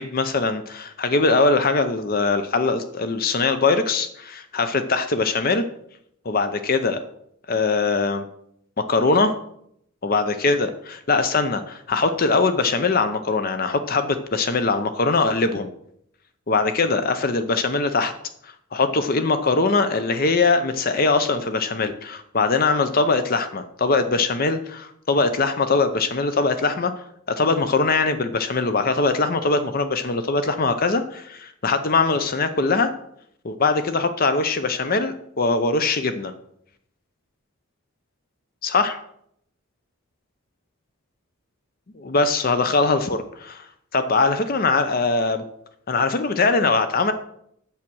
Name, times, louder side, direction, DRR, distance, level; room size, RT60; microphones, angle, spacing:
voice 1, 0.0-5.7 6.3-7.0 7.5-8.3 8.8-9.3 10.0-15.7 16.5-18.1 18.4-26.9 27.3-32.9 33.4-36.3 38.6-39.0 42.0-43.6 43.9-45.4 45.9-47.1, left 3 dB, 45° left, 9 dB, 0.6 m, -21 dB
8.6 x 7.5 x 6.1 m, 0.72 s
head